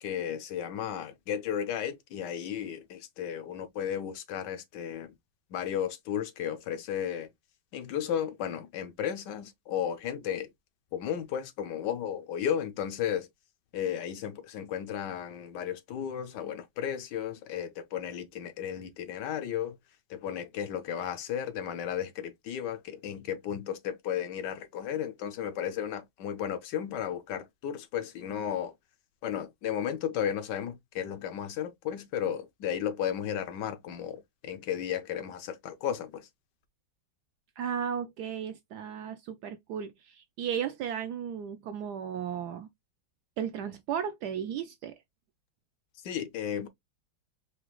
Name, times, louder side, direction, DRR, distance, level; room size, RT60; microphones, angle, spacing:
voice 1, 0.0-5.1 5.5-7.3 7.7-10.5 10.9-13.3 13.7-19.8 20.1-28.7 29.2-36.3 46.0-46.7, left 9 dB, 75° left, 1.1 m, -34 dB
voice 2, 37.6-42.7 43.4-44.9, right 8 dB, 75° right, 1.0 m, -35 dB
4.9 x 2.3 x 3.0 m
omnidirectional pair, 2.1 m